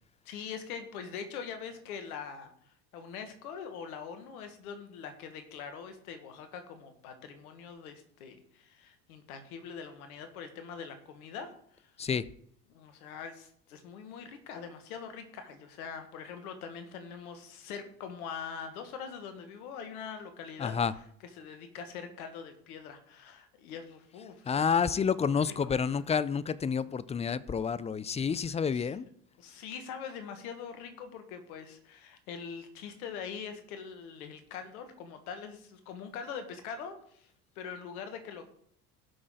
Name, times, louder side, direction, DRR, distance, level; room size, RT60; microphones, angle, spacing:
voice 1, 0.3-11.9 12.7-26.0 28.3-29.0 29.4-38.5, left 6 dB, 70° left, 8 dB, 1.8 m, -43 dB
voice 2, 20.6-20.9 24.5-29.0, left 6 dB, 15° left, 17 dB, 0.4 m, -29 dB
17.0 x 6.2 x 3.9 m, 0.65 s
hypercardioid pair, 70°, 45 cm